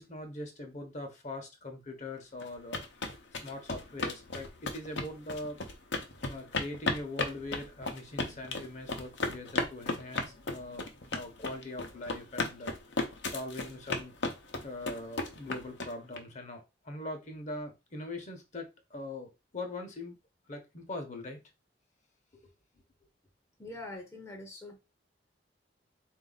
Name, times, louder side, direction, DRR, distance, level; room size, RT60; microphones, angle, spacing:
voice 1, 0.0-5.6 6.3-14.1 14.6-20.2 20.5-21.4, left 2 dB, 40° left, 1.0 m, -42 dB
sound 1, 2.4-16.2, left 3 dB, 75° left, 0.8 m, -35 dB
voice 2, 23.6-24.8, left 2 dB, 15° left, 0.7 m, -44 dB
3.9 x 2.7 x 3.9 m
head